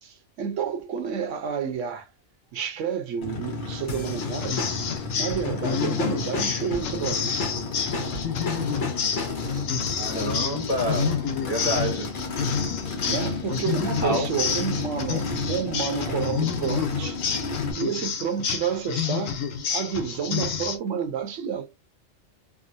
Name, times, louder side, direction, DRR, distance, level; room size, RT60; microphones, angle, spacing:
voice 1, 0.0-2.1 2.5-4.7 5.2-7.7 8.0-8.3 10.1-10.3 13.0-17.2 17.8-19.4 19.7-21.8, right 7 dB, 80° right, 0.9 m, -30 dB
Race car auto racing / Idling / Accelerating revving vroom, 3.2-17.7, left 4 dB, 45° left, 1.1 m, -32 dB
sound 1, 3.9-9.6, left 3 dB, 65° left, 1.3 m, -34 dB
sound 2, 4.0-20.8, left 7 dB, 90° left, 1.0 m, -30 dB
voice 2, 10.0-12.1 14.0-14.3, equal, 20° left, 1.2 m, -28 dB
3.7 x 2.0 x 2.5 m
omnidirectional pair, 1.3 m